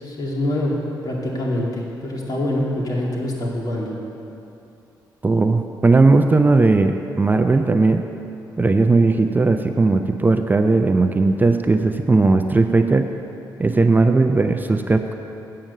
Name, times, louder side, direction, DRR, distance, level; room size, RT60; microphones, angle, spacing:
voice 1, 0.0-4.0, left 1 dB, 50° left, -3 dB, 2.3 m, -25 dB
voice 2, 5.2-8.0 8.6-13.1 13.6-15.1, right 3 dB, 20° right, 6 dB, 0.5 m, -17 dB
8.8 x 7.7 x 6.7 m, 2.8 s
cardioid pair, 75°, 8 cm